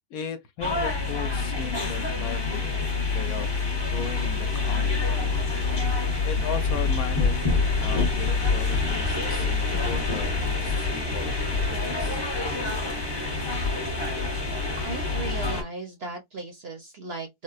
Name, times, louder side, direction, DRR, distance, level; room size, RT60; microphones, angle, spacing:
voice 1, 0.1-2.7 3.1-5.6 6.2-12.2, left 6 dB, 70° left, 1.1 m, -37 dB
sound 1, 0.6-15.6, left 4 dB, 20° left, 0.7 m, -26 dB
voice 2, 14.8-17.4, right 3 dB, 55° right, 0.7 m, -37 dB
3.7 x 2.1 x 2.3 m
omnidirectional pair, 1.6 m